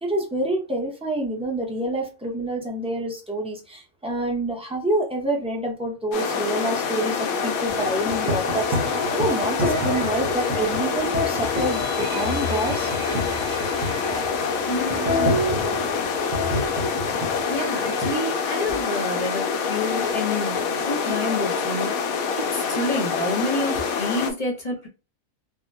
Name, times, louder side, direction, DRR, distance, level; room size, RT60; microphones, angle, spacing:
voice 1, 0.0-12.9, right 1 dB, 5° right, 0.4 m, -27 dB
sound 1, 6.1-24.3, left 5 dB, 90° left, 1.1 m, -26 dB
sound 2, 7.7-18.1, left 1 dB, 65° right, 1.3 m, -29 dB
voice 2, 14.7-15.4 17.5-21.9 22.5-24.9, left 1 dB, 35° left, 0.7 m, -28 dB
3.4 x 2.1 x 2.6 m
omnidirectional pair, 1.4 m